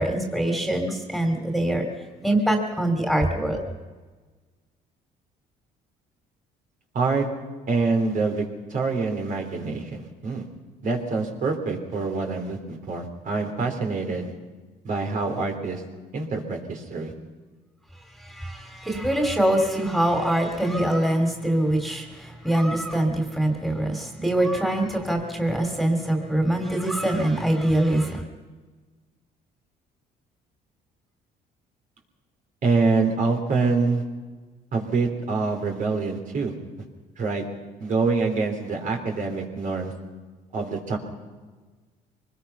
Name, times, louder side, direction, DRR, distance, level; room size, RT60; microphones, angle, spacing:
voice 1, 0.0-1.9 2.2-3.6 18.2-28.3, right 1 dB, ahead, 3 dB, 2.9 m, -24 dB
voice 2, 6.9-7.3 7.7-10.4 10.8-14.3 14.8-15.8 16.1-17.1 32.6-34.0 34.7-36.5 37.2-37.4 37.8-39.9 40.5-41.0, right 4 dB, 50° right, 2 dB, 3.8 m, -25 dB
24.0 x 20.0 x 5.7 m, 1.4 s
cardioid pair, 110°, 17 cm